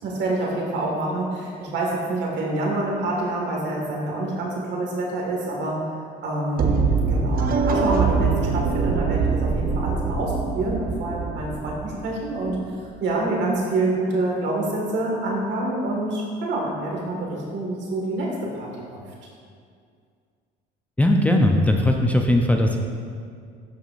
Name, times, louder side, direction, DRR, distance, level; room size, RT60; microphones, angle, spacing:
voice 1, 0.0-5.8 6.2-12.6 13.0-19.0, right 2 dB, 65° right, -2 dB, 1.8 m, -27 dB
sound 1, 6.6-12.6, right 4 dB, 50° right, 0.6 m, -23 dB
voice 2, 21.0-22.8, left 1 dB, 5° left, 2 dB, 0.5 m, -19 dB
12.5 x 4.7 x 2.5 m, 2.2 s
cardioid pair, 105°, 19 cm